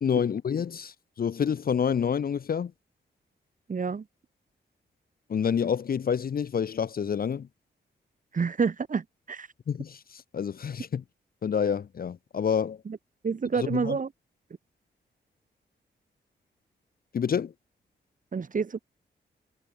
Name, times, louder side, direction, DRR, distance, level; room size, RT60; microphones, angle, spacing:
voice 1, 0.0-2.7 5.3-7.5 9.7-11.0 11.4-12.8 13.5-14.0 17.1-17.5, left 7 dB, 50° left, 0.7 m, -28 dB
voice 2, 3.7-4.0 8.3-9.5 12.9-13.0 13.2-14.1 18.3-18.8, right 5 dB, 45° right, 1.5 m, -28 dB
cardioid pair, 70°, 19 cm